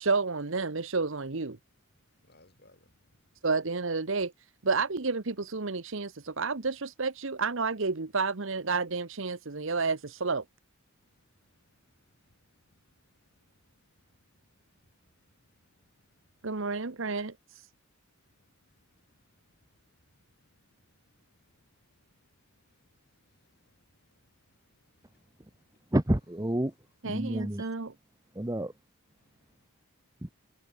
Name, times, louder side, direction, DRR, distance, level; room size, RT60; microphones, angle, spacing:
voice 1, 0.0-1.6 3.4-4.3 4.6-10.4 16.4-17.7 27.0-27.9, right 4 dB, 60° right, 1.0 m, -30 dB
voice 2, 1.8-3.5 6.3-6.4 9.6-9.7 11.0-16.9 18.2-26.0 26.6-27.2 29.2-29.7 30.2-30.3, left 1 dB, 45° left, 6.1 m, -70 dB
voice 3, 25.9-26.7 27.0-27.7 28.3-28.7 30.2-30.3, right 1 dB, 15° right, 0.9 m, -29 dB
head